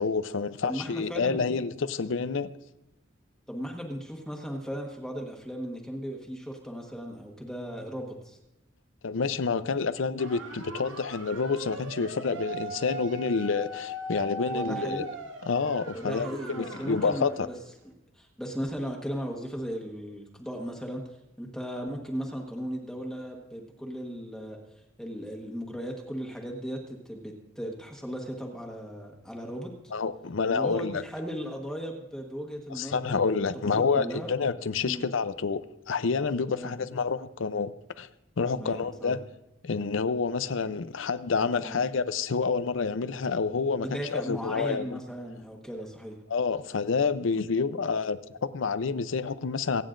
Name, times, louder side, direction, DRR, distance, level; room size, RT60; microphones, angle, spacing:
voice 1, 0.0-2.5 9.0-15.1 15.4-17.5 29.9-31.0 32.7-37.7 38.0-38.1 38.4-39.2 39.6-45.0 46.3-49.8, left 5 dB, 75° left, 14 dB, 0.6 m, -28 dB
voice 2, 0.6-1.4 3.5-8.4 14.5-15.1 15.9-17.6 18.1-21.0 21.4-24.6 25.0-29.7 30.5-33.4 33.7-34.3 34.8-35.1 36.5-36.7 38.5-39.2 41.6-41.8 43.8-46.2, equal, 5° left, 0 dB, 1.3 m, -37 dB
sound 1, 10.2-17.4, right 1 dB, 70° right, 1.3 m, -39 dB
24.0 x 9.3 x 2.6 m, 0.90 s
head